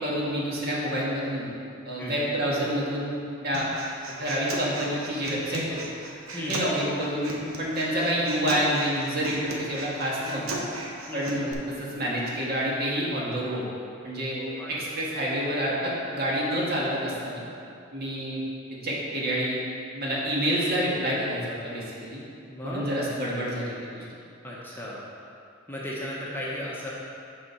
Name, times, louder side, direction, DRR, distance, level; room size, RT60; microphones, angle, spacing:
voice 1, 0.0-1.5 1.8-3.7 4.1-5.8 6.5-10.6 11.1-13.7 14.0-14.4 14.7-17.4 17.9-18.4 18.7-19.6 19.9-22.2 22.6-24.0, equal, 50° right, -5 dB, 1.7 m, -28 dB
Human voice, 3.5-11.5, right 2 dB, 85° right, 0.9 m, -36 dB
voice 2, 11.1-11.5 14.3-14.9 22.5-22.9 24.4-25.0 25.7-26.9, left 1 dB, 10° left, -6 dB, 0.9 m, -36 dB
7.5 x 4.3 x 5.7 m, 2.5 s
head